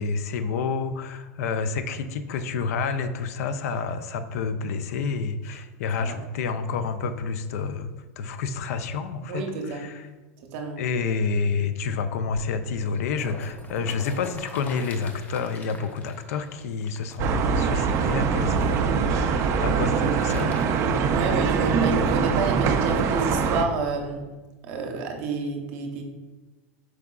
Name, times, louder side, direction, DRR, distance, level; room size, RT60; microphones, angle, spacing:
voice 1, 0.0-9.4 9.7-10.1 10.8-20.5, left 5 dB, 70° left, 10 dB, 0.4 m, -29 dB
voice 2, 9.3-10.0 10.5-10.8 20.8-24.3 24.7-26.0, right 4 dB, 55° right, 3 dB, 0.7 m, -29 dB
sound 1, 12.9-18.8 19.7-22.2 22.9-23.0, left 2 dB, 20° left, 0.5 m, -44 dB
sound 2, 17.2-23.7, right 5 dB, 35° right, 0.3 m, -23 dB
4.6 x 3.6 x 2.3 m, 1.2 s
hypercardioid pair, 120°, 8 cm